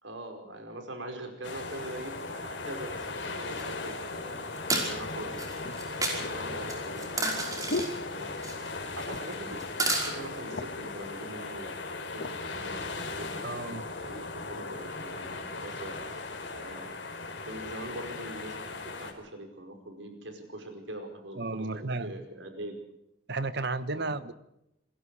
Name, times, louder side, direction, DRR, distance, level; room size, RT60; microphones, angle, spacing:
voice 1, 0.0-5.4 6.0-8.6 8.9-16.0 16.5-17.0 17.4-22.8 23.9-24.2, right 1 dB, 85° right, 5 dB, 5.0 m, -43 dB
sound 1, 1.4-19.1, left 3 dB, 75° left, 4.1 m, -38 dB
sound 2, 3.6-3.7 4.6-4.9 5.4-6.2 6.7-7.9 8.4-8.7 9.0-9.3 9.6-10.1, right 2 dB, 20° right, 5.3 m, -30 dB
sound 3, 4.7-4.8 5.6-8.7 9.0-9.5 9.8-9.9 10.2-10.9 11.6-12.4 13.0-13.2, left 2 dB, 55° left, 1.4 m, -39 dB
voice 2, 13.4-13.8 21.4-22.1 23.3-24.3, right 3 dB, 60° right, 13 dB, 1.2 m, -33 dB
27.0 x 21.5 x 4.9 m, 0.84 s
head